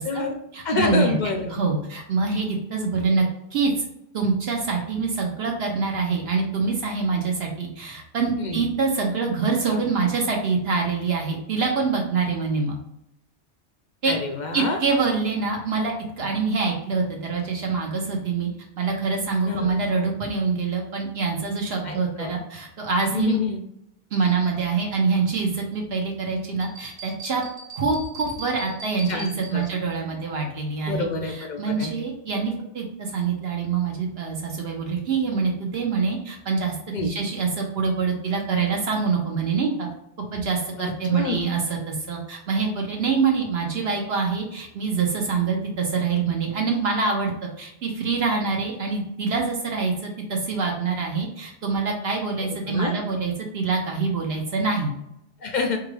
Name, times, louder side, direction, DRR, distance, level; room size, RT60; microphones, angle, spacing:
voice 1, 0.0-0.3 0.6-1.5 8.4-8.7 14.1-14.8 19.5-19.8 21.8-22.4 23.1-23.6 29.1-29.3 29.5-29.7 30.8-31.9 36.9-37.1 40.8-41.5 52.7-52.9 55.4-55.8, left 4 dB, 60° left, 3 dB, 0.5 m, -27 dB
voice 2, 0.5-1.1 1.5-3.2 3.5-3.7 4.1-12.8 14.0-14.1 14.5-18.5 18.8-23.4 24.1-27.4 27.7-36.8 37.0-39.9 40.3-54.9, right 4 dB, 65° right, 0 dB, 0.9 m, -25 dB
sound 1, 26.6-30.0, right 1 dB, 80° right, 1.3 m, -41 dB
4.6 x 2.4 x 3.1 m, 0.80 s
omnidirectional pair, 1.2 m